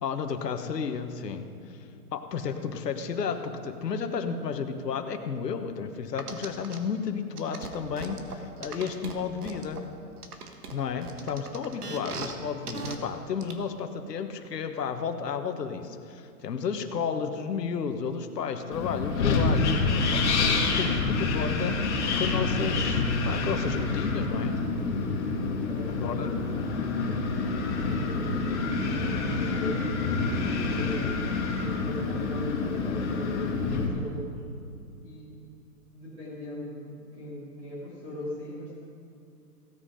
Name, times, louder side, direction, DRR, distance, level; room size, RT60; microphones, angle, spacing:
voice 1, 0.0-1.5 2.1-9.8 10.7-24.6 26.0-26.3, left 6 dB, 85° left, 6 dB, 1.3 m, -32 dB
sound 1, 6.2-6.8 7.4-9.8 10.2-12.3 12.7-13.0 13.4-13.5, right 5 dB, 70° right, 1.6 m, -38 dB
Wind, 18.7-33.9, left 3 dB, 45° left, 2.1 m, -27 dB
voice 2, 25.6-27.1 27.5-29.8 30.4-34.4 35.0-35.3 35.9-38.8, left 1 dB, 10° right, -10 dB, 2.8 m, -40 dB
16.5 x 7.8 x 5.0 m, 2.6 s
hypercardioid pair, 170°, 47 cm